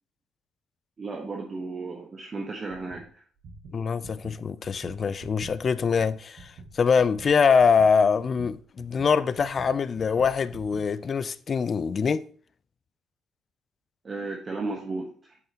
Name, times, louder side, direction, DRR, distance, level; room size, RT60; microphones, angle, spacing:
voice 1, 1.0-3.2 14.0-15.1, right 3 dB, 30° right, 1.1 m, -34 dB
sound 1, 2.7-3.1 3.4-10.9, right 3 dB, 55° right, 2.1 m, -46 dB
voice 2, 3.7-12.3, left 6 dB, 40° left, 0.4 m, -24 dB
8.3 x 5.5 x 2.9 m
cardioid pair, 105°, 0 cm